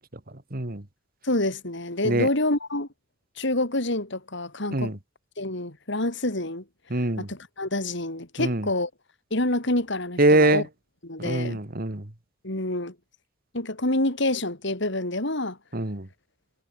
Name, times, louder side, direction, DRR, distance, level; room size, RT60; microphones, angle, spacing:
voice 1, 0.5-0.8 2.0-2.3 4.7-5.0 6.9-7.3 8.4-8.7 10.2-10.6 11.2-12.1 15.7-16.1, right 2 dB, 50° right, 2.2 m, -23 dB
voice 2, 1.2-2.9 3.4-4.9 5.4-6.6 6.9-8.9 9.3-10.6 11.0-11.6 12.4-12.9 13.5-15.6, left 1 dB, 65° left, 4.3 m, -27 dB
head